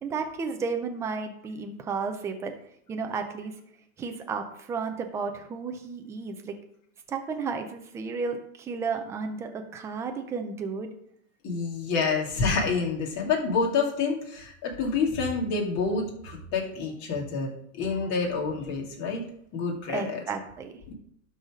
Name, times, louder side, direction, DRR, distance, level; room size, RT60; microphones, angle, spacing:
voice 1, 0.0-2.5 2.9-3.5 4.0-6.5 7.1-10.9 19.9-20.7, right 5 dB, 10° right, 5 dB, 0.3 m, -33 dB
voice 2, 11.4-19.2 19.5-20.2 20.9-21.0, left 4 dB, 40° left, -1 dB, 2.6 m, -28 dB
12.0 x 4.1 x 4.9 m, 0.70 s
supercardioid pair, 140°, 42 cm